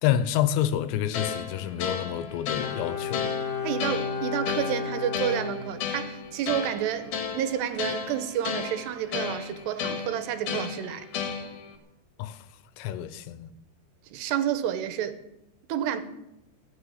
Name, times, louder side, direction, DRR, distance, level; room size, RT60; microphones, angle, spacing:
voice 1, 0.0-3.4 12.2-12.5 12.8-13.5, left 11 dB, 90° left, 3.2 m, -28 dB
sound 1, 1.1-11.8, left 6 dB, 65° left, 3.5 m, -34 dB
Bowed string instrument, 2.6-6.3 6.6-6.7, left 6 dB, 25° left, 1.7 m, -33 dB
voice 2, 3.6-11.1 14.1-15.2 15.7-16.0, right 10 dB, 80° right, 3.0 m, -30 dB
17.5 x 6.9 x 9.9 m
omnidirectional pair, 5.0 m